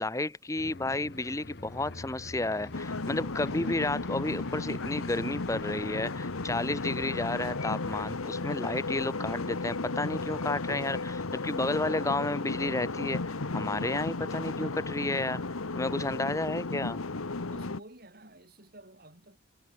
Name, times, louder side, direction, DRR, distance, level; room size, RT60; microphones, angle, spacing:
voice 1, 0.0-15.4 15.7-17.0, left 2 dB, 15° left, 0.7 m, -32 dB
sound 1, 0.6-8.1, left 2 dB, 50° left, 1.2 m, -45 dB
sound 2, 2.7-17.8, left 3 dB, 85° left, 1.3 m, -34 dB
voice 2, 17.4-19.4, right 1 dB, 45° right, 5.0 m, -52 dB
head